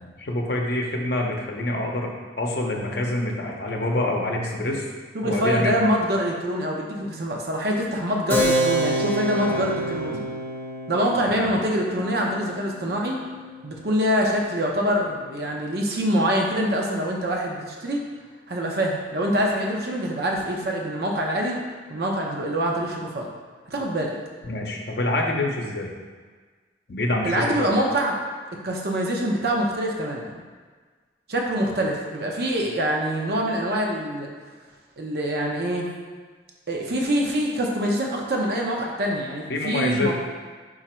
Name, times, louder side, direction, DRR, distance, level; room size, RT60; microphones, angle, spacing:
voice 1, 0.0-4.9 5.2-5.8 9.4-10.0 11.3-11.5 24.4-25.9 26.9-27.7 39.5-40.1, left 1 dB, 65° left, 0 dB, 0.6 m, -26 dB
voice 2, 5.1-10.2 10.9-13.2 13.6-18.0 18.5-21.6 21.9-23.3 23.7-24.2 27.2-28.2 28.6-30.4 31.3-34.3 35.0-35.9 36.7-40.1, equal, 60° right, -1 dB, 0.6 m, -25 dB
Keyboard (musical), 8.3-14.4, right 1 dB, 10° left, 0.7 m, -28 dB
4.9 x 2.4 x 4.2 m, 1.5 s
head